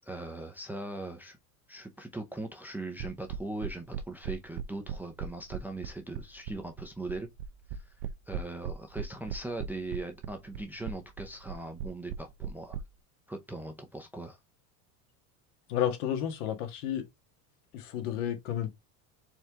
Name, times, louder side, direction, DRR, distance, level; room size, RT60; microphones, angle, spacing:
voice 1, 0.0-1.4 1.7-7.3 7.7-7.9 8.3-12.8 13.3-14.4, right 2 dB, 5° right, 0.5 m, -40 dB
sound 1, 3.0-12.8, right 8 dB, 55° right, 0.7 m, -37 dB
voice 2, 15.7-17.0 17.7-18.7, left 10 dB, 80° left, 1.7 m, -31 dB
4.5 x 3.3 x 3.5 m
cardioid pair, 150°, 45 cm